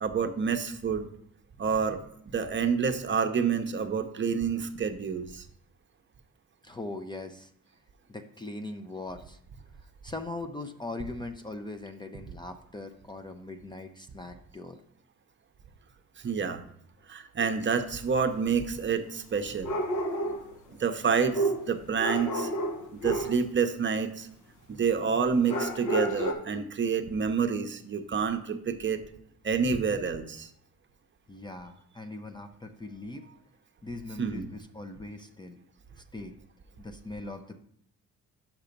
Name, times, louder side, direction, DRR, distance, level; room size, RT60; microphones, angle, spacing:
voice 1, 0.0-1.1 1.6-5.4 16.2-16.6 17.1-19.8 20.8-22.5 22.9-24.3 24.7-29.0 29.4-30.5 34.2-34.5, right 6 dB, 40° right, 7 dB, 0.7 m, -28 dB
voice 2, 6.6-7.5 8.1-9.4 10.0-14.8 31.3-33.3 33.8-35.6 36.1-36.4 36.8-37.6, left 2 dB, 15° left, 6 dB, 0.5 m, -40 dB
sound 1, 17.4-17.5 19.6-20.5 21.3-23.4 25.5-26.3, right 1 dB, 75° left, 1.1 m, -30 dB
5.9 x 5.5 x 5.2 m, 0.70 s
cardioid pair, 90°, 30 cm